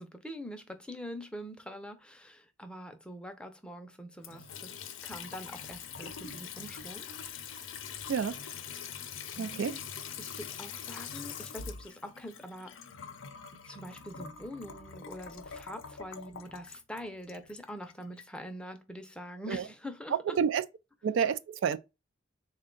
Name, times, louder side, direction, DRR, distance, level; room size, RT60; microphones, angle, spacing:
voice 1, 0.0-7.1 9.4-9.8 10.2-12.8 13.6-20.4, equal, 5° left, 0.5 m, -44 dB
Water tap faucet / Sink (filling or washing) / Trickle dribble, 4.2-18.3, left 7 dB, 90° left, 0.5 m, -44 dB
voice 2, 8.1-8.4 9.4-9.7 19.5-19.6 20.3-20.6 21.0-21.8, right 7 dB, 70° right, 0.3 m, -29 dB
3.6 x 2.2 x 3.7 m
head